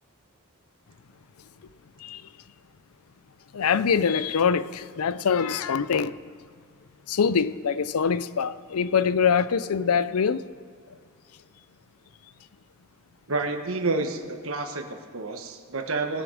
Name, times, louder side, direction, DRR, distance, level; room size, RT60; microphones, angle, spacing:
voice 1, 3.5-6.1 7.1-10.4, left 6 dB, 80° left, 0.5 m, -24 dB
voice 2, 13.3-16.2, right 3 dB, 70° right, 1.3 m, -29 dB
19.5 x 7.0 x 6.4 m
head